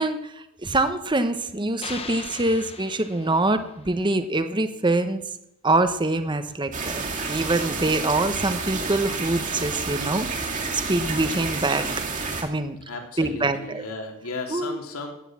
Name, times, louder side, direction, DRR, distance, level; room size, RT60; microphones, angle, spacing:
voice 1, 0.0-5.2 5.6-7.0 7.3-11.9 12.4-12.8 13.2-13.8 14.5-14.8, right 2 dB, 20° right, 10 dB, 1.1 m, -24 dB
sound 1, 1.8-4.0, left 5 dB, 25° left, 1.2 m, -39 dB
sound 2, 6.7-12.4, right 4 dB, 35° right, 2.5 m, -29 dB
voice 2, 12.9-15.1, left 3 dB, 75° left, 2 dB, 3.1 m, -35 dB
15.5 x 10.0 x 7.4 m, 0.89 s
head